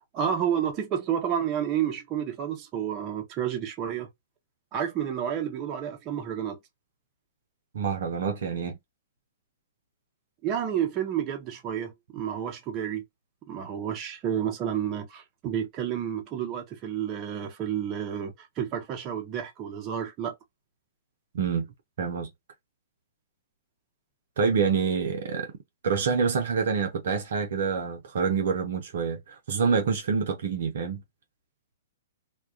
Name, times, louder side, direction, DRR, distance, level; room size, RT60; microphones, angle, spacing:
voice 1, 0.1-4.1 4.7-6.6 10.4-13.0 13.5-20.3, right 9 dB, 30° right, 0.8 m, -30 dB
voice 2, 7.7-8.7 21.3-21.7 22.0-22.3 24.4-25.5 25.8-31.0, right 6 dB, 65° right, 0.6 m, -27 dB
2.3 x 2.2 x 2.4 m
hypercardioid pair, 120°, 0 cm